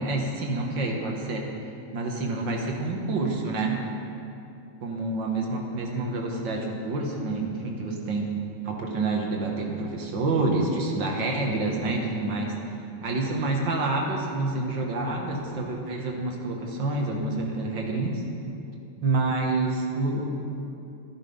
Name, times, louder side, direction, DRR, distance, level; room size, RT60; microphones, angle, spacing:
voice 1, 0.0-1.4 1.9-3.9 4.8-8.3 8.6-12.6 13.0-18.2 19.0-20.3, right 2 dB, 50° right, 0 dB, 1.6 m, -28 dB
13.5 x 12.0 x 5.5 m, 2.6 s
omnidirectional pair, 3.6 m